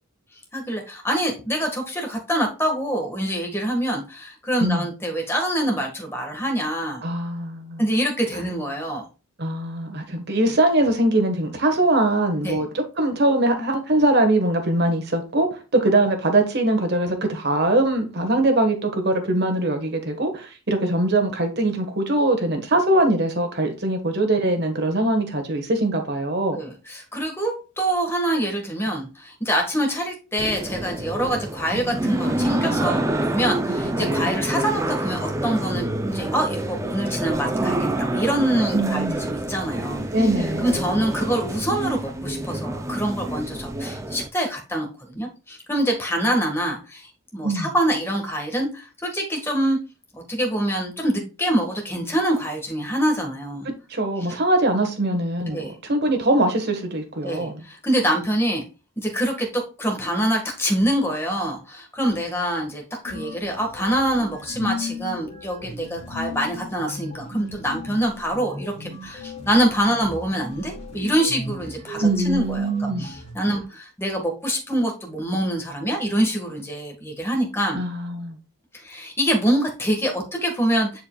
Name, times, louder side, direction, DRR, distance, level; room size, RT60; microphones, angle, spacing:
voice 1, 0.5-7.0 7.8-9.1 12.4-12.6 26.5-40.1 40.4-49.8 50.1-53.7 55.5-55.7 57.2-58.6 59.0-77.8 78.7-81.0, right 1 dB, 10° left, 1.6 m, -25 dB
voice 2, 7.0-7.8 9.4-26.6 38.7-39.2 40.1-40.6 47.4-47.7 53.6-57.6 72.0-73.1 73.5-73.6 77.7-78.4, right 1 dB, 50° right, 1.4 m, -22 dB
sound 1, 30.4-44.3, right 1 dB, 15° right, 0.5 m, -27 dB
sound 2, 63.0-73.3, left 2 dB, 30° left, 3.0 m, -36 dB
9.7 x 4.6 x 2.3 m
head